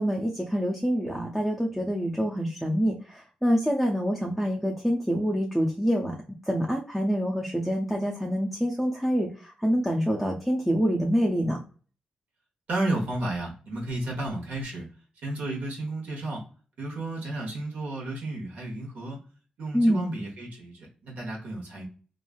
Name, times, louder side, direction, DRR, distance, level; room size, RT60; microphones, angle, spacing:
voice 1, 0.0-6.1 6.5-11.6 19.7-20.1, equal, ahead, -2 dB, 0.5 m, -26 dB
voice 2, 12.7-14.9 15.2-16.4 16.8-19.2 19.6-21.8, right 2 dB, 75° right, -1 dB, 1.1 m, -32 dB
3.1 x 2.4 x 2.3 m, 0.38 s
cardioid pair, 90°, 3 cm